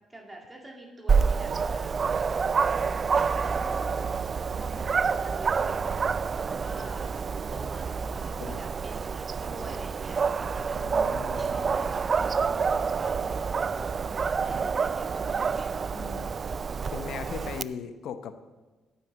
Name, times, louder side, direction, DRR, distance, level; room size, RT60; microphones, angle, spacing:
voice 1, 0.1-2.1 2.6-6.1 6.4-7.2 7.5-10.9 11.3-16.0, right 1 dB, 20° right, 1 dB, 2.2 m, -46 dB
Dog, 1.1-17.6, right 5 dB, 45° right, 0.3 m, -28 dB
voice 2, 10.8-11.5 15.9-16.3 16.9-18.3, left 7 dB, 75° left, 10 dB, 0.9 m, -38 dB
9.0 x 8.9 x 7.5 m, 1.2 s
cardioid pair, 90°, 0 cm